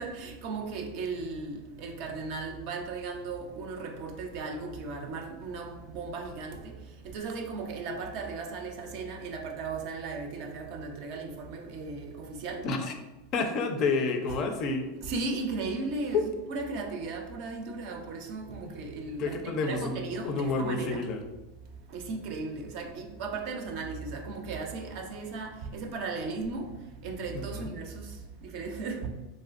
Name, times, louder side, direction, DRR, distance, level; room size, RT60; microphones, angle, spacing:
voice 1, 0.0-12.7 15.0-21.0 21.9-29.1, right 3 dB, 60° right, 0.4 m, -36 dB
voice 2, 13.3-14.9 16.1-16.3 18.6-18.7 19.2-21.2 27.3-27.7, left 4 dB, 45° left, 0.4 m, -29 dB
3.1 x 2.6 x 2.5 m
hypercardioid pair, 115°, 0 cm